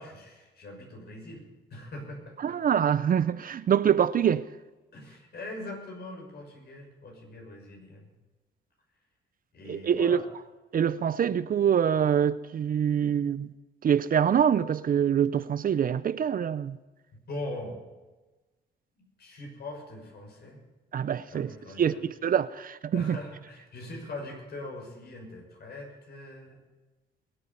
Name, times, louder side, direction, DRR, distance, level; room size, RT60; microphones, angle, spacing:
voice 1, 0.0-1.4 1.7-2.5 4.9-8.0 9.5-10.2 17.3-17.8 19.0-20.6 21.3-22.0 22.9-26.6, left 2 dB, 55° left, 6.3 m, -41 dB
voice 2, 2.4-4.5 9.7-10.2 10.7-13.5 13.8-16.8 20.9-21.5 21.8-23.2, right 8 dB, 45° right, 0.6 m, -25 dB
22.0 x 9.2 x 5.6 m
cardioid pair, 90°, 20 cm